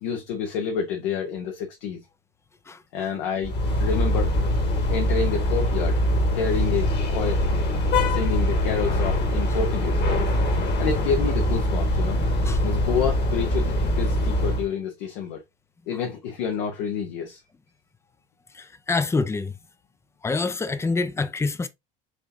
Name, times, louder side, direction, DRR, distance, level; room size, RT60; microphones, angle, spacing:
voice 1, 0.0-2.0 2.9-3.5 3.8-4.3 4.7-6.0 6.3-7.4 8.1-10.0 10.8-12.2 12.6-15.4 15.9-17.4, left 6 dB, 65° left, 0.9 m, -28 dB
voice 2, 2.7-3.1 10.6-10.7 12.4-12.6 18.5-19.5 20.2-21.7, left 3 dB, 10° left, 0.4 m, -27 dB
sound 1, 3.4-14.7, left 1 dB, 35° left, 1.4 m, -23 dB
6.3 x 2.9 x 2.6 m
figure-of-eight pair, 70°, 29 cm